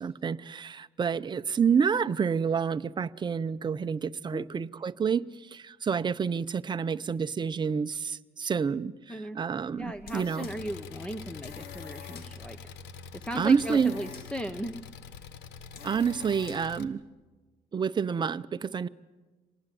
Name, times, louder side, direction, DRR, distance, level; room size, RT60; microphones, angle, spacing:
voice 1, 0.0-10.5 13.3-13.9 15.8-17.0 17.7-18.9, right 6 dB, 25° right, 0.7 m, -28 dB
sound 1, 9.7-16.8, left 6 dB, 65° left, 2.1 m, -49 dB
voice 2, 9.8-12.6 13.1-14.8, equal, 5° left, 0.9 m, -37 dB
Engine, 10.4-16.8, left 6 dB, 85° left, 1.4 m, -45 dB
26.0 x 19.5 x 7.7 m
cardioid pair, 110°, 17 cm